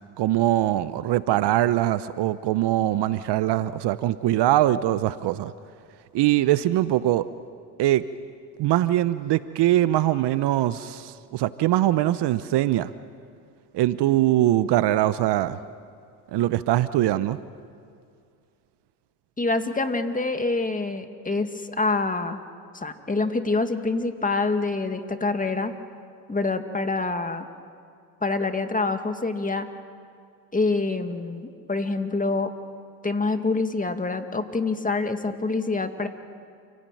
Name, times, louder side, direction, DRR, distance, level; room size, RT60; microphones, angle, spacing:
voice 1, 0.2-5.5 6.1-7.3 7.8-8.0 8.6-12.9 13.7-15.6 16.3-17.4, right 14 dB, 55° right, 15 dB, 0.9 m, -22 dB
voice 2, 19.4-22.4 22.7-25.7 26.3-27.5 28.2-29.7 30.5-32.5 33.0-36.1, left 3 dB, 15° left, 7 dB, 2.2 m, -26 dB
29.0 x 17.0 x 9.2 m, 2.3 s
hypercardioid pair, 70°, 49 cm